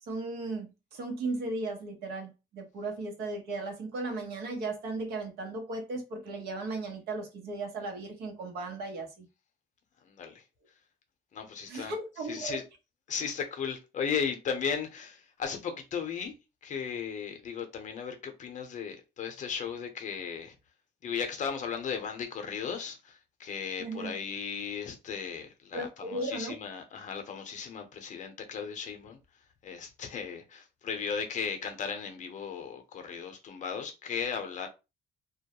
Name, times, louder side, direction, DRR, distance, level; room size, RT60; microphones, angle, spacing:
voice 1, 0.0-9.3 11.7-12.6 23.8-24.2 25.7-26.5, right 2 dB, 75° right, 0.9 m, -36 dB
voice 2, 10.0-10.4 11.3-12.0 12.2-12.6 13.1-16.3 16.6-20.5 21.0-29.2 29.6-34.7, left 6 dB, 45° left, 0.7 m, -36 dB
2.2 x 2.0 x 2.9 m
cardioid pair, 110°, 17 cm